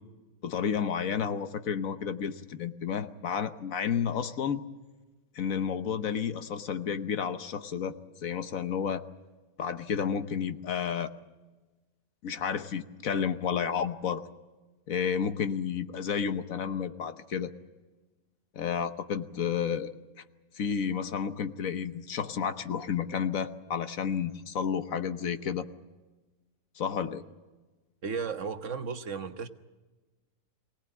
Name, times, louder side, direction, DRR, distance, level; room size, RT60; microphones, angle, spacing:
voice 1, 0.4-4.6 5.3-7.9 8.2-9.0 9.6-11.1 12.2-14.2 14.9-17.5 18.5-19.9 20.5-25.7 26.8-27.2, left 7 dB, 65° left, 10 dB, 1.4 m, -31 dB
voice 2, 28.0-29.5, right 5 dB, 55° right, 9 dB, 1.3 m, -34 dB
24.0 x 18.0 x 9.0 m, 1.2 s
omnidirectional pair, 1.6 m